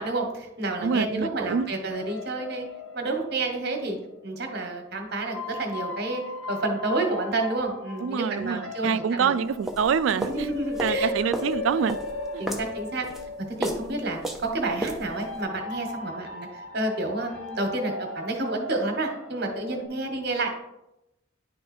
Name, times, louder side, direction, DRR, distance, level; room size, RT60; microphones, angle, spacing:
voice 1, 0.0-2.7 2.9-4.0 4.2-6.2 6.5-9.4 10.3-11.1 12.4-13.1 13.6-20.5, right 2 dB, 55° right, 3 dB, 1.3 m, -29 dB
voice 2, 0.8-1.7 8.0-10.5 10.8-12.0 12.3-12.4, right 6 dB, 85° right, 14 dB, 0.4 m, -26 dB
sound 1, 1.9-4.4 5.2-19.9, left 3 dB, 80° left, 0.9 m, -38 dB
sound 2, 9.4-15.4, right 1 dB, ahead, 0.6 m, -35 dB
10.0 x 3.9 x 4.3 m, 0.89 s
head